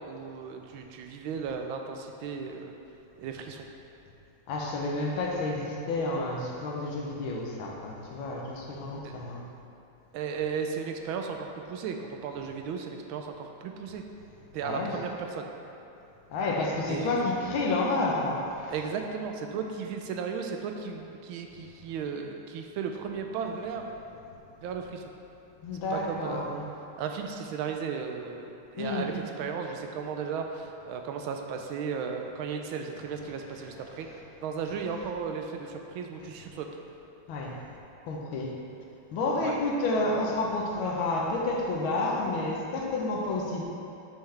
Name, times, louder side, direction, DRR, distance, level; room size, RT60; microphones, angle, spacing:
voice 1, 0.1-2.8 3.2-3.6 9.0-9.1 10.1-14.0 14.5-15.5 16.9-17.1 18.7-23.9 24.6-25.0 25.9-26.5 27.0-34.1 34.4-36.7 39.4-39.5, right 6 dB, 80° right, 4 dB, 1.4 m, -35 dB
voice 2, 4.5-9.4 14.6-15.0 16.3-18.7 25.6-26.6 28.8-29.2 37.3-37.6 38.0-38.5 39.1-43.6, left 2 dB, 80° left, -1 dB, 1.7 m, -30 dB
7.2 x 5.7 x 3.3 m, 2.9 s
omnidirectional pair, 2.2 m